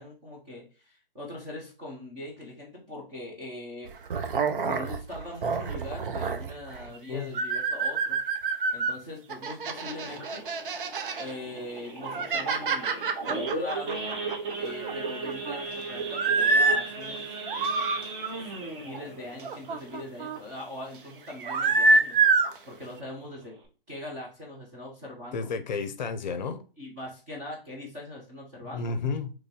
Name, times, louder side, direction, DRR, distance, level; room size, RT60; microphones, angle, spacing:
voice 1, 0.0-3.9 4.6-8.2 8.7-10.4 11.2-12.9 13.3-14.0 14.6-17.3 18.4-18.5 18.8-23.6 23.9-25.5 26.8-29.0, left 1 dB, 10° right, 0.3 m, -41 dB
sound 1, 3.9-6.9 7.3-9.0 9.3-11.3 11.8-14.5 14.8-15.6 16.1-16.8 17.3-18.0 19.4-20.4 21.3-22.6, right 3 dB, 65° right, 0.6 m, -26 dB
voice 2, 6.9-7.3 25.3-26.6 28.7-29.3, left 4 dB, 50° left, 0.6 m, -32 dB
Idling / Accelerating revving vroom / Sawing, 9.8-20.8 21.2-21.4 21.7-21.8 22.3-22.5 23.0-23.1 23.3-23.7, right 3 dB, 30° right, 0.9 m, -36 dB
3.1 x 2.6 x 3.5 m
hypercardioid pair, 140°, 29 cm